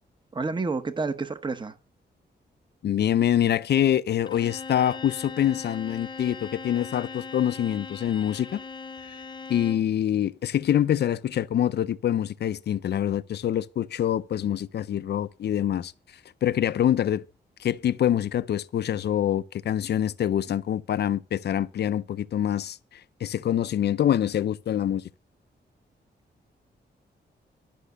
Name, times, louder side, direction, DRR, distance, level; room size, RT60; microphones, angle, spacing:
voice 1, 0.3-1.7, right 4 dB, 25° right, 0.9 m, -29 dB
voice 2, 2.8-8.6 9.5-15.9 16.4-17.2 17.6-22.8 23.2-25.0, left 10 dB, 65° left, 0.5 m, -25 dB
Bowed string instrument, 4.3-9.9, left 4 dB, 25° left, 0.7 m, -40 dB
12.0 x 5.9 x 6.6 m
wide cardioid pair, 140°, 18 cm